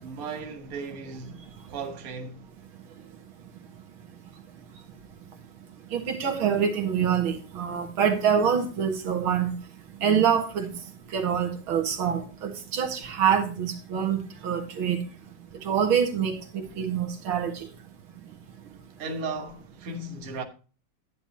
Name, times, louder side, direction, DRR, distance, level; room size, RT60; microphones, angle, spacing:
voice 1, 0.0-2.5 19.0-20.4, right 3 dB, 50° right, 1.6 m, -36 dB
voice 2, 5.9-9.5 10.0-10.7 11.1-15.0 15.7-17.7, right 8 dB, 85° right, 2.4 m, -25 dB
10.5 x 10.0 x 2.9 m
omnidirectional pair, 2.2 m